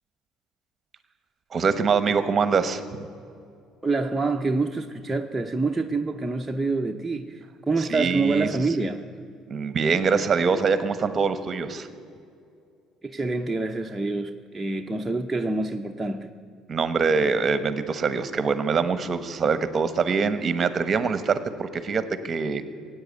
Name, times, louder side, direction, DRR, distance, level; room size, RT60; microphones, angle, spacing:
voice 1, 1.5-2.8 7.8-8.5 9.5-11.9 16.7-22.6, right 5 dB, 35° right, 12 dB, 1.1 m, -24 dB
voice 2, 3.8-9.1 13.0-16.3, right 3 dB, 10° right, 2 dB, 0.7 m, -26 dB
16.5 x 9.0 x 9.3 m, 2.4 s
supercardioid pair, 95°, 0 cm